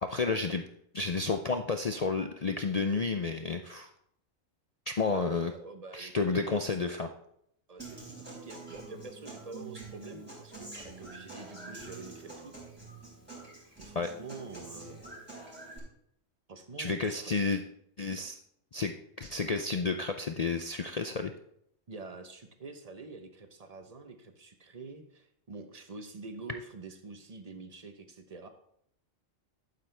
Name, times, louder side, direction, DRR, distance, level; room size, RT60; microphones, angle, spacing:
voice 1, 0.0-0.6 0.9-3.9 4.9-5.5 5.9-7.1 13.9-14.1 16.8-17.6 18.0-18.4 18.7-21.3, left 4 dB, 60° left, 6 dB, 0.4 m, -31 dB
voice 2, 5.1-7.1 7.7-12.5 13.8-15.0 16.5-17.4 21.9-28.5, right 3 dB, 30° right, 8 dB, 0.9 m, -46 dB
Human voice / Acoustic guitar, 7.8-15.8, right 3 dB, 5° right, 4.8 m, -46 dB
11.5 x 9.2 x 3.4 m, 0.71 s
omnidirectional pair, 1.4 m